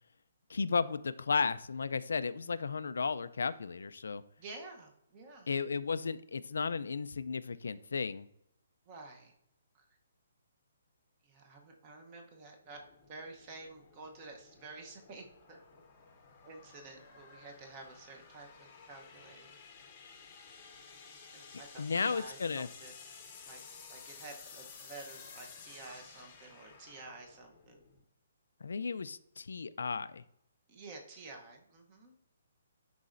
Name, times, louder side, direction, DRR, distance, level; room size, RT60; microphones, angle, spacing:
voice 1, 0.5-4.2 5.5-8.3 21.5-22.7 28.6-30.2, left 5 dB, 80° left, 14 dB, 0.3 m, -34 dB
voice 2, 4.4-5.5 8.9-9.3 9.7-9.9 11.2-12.8 13.1-15.6 16.4-19.6 21.3-22.9 23.4-23.6 23.9-27.8 30.7-32.1, right 3 dB, 20° right, 3 dB, 0.8 m, -50 dB
sound 1, 12.6-28.0, left 5 dB, 15° left, 0.8 m, -54 dB
10.5 x 4.1 x 2.5 m, 0.76 s
hypercardioid pair, 175°, 0 cm